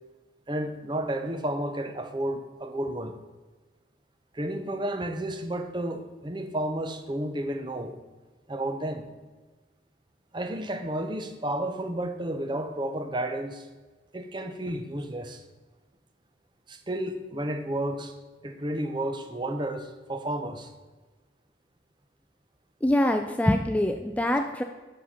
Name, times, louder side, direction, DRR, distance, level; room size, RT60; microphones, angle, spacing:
voice 1, 0.5-3.2 4.3-7.9 8.5-9.1 10.3-13.6 14.1-15.4 16.7-18.1 18.4-20.7, right 1 dB, 25° right, 7 dB, 0.7 m, -32 dB
voice 2, 22.8-24.6, left 1 dB, 10° left, 5 dB, 0.3 m, -24 dB
7.5 x 5.9 x 5.5 m, 1.2 s
head